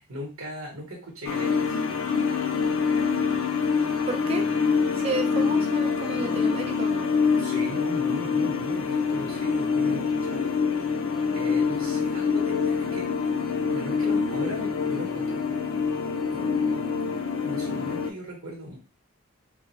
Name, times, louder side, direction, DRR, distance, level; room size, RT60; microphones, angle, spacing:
voice 1, 0.0-1.8 7.3-10.5 11.3-15.7 16.3-16.9 17.2-18.8, equal, 80° right, -1 dB, 1.1 m, -38 dB
sound 1, 1.2-18.1, left 5 dB, 75° left, 0.4 m, -25 dB
voice 2, 4.1-4.5 4.9-7.1, right 2 dB, 30° right, 3 dB, 0.5 m, -31 dB
3.3 x 2.1 x 3.2 m, 0.31 s
head